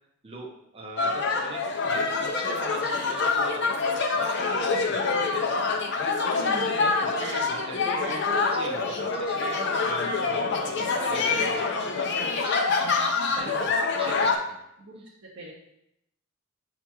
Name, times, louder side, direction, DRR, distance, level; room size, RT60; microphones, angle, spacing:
voice 1, 0.2-3.8 4.1-5.1 6.8-12.6 13.3-14.5 15.0-15.1, right 2 dB, 25° right, -1 dB, 0.5 m, -40 dB
sound 1, 1.0-14.4, left 4 dB, 55° left, 0.5 m, -26 dB
voice 2, 6.3-6.9 7.2-7.6 8.0-8.3 12.8-13.6 14.8-15.0 15.4-15.5, right 1 dB, 55° right, -5 dB, 0.8 m, -40 dB
7.2 x 2.8 x 2.3 m, 0.80 s
head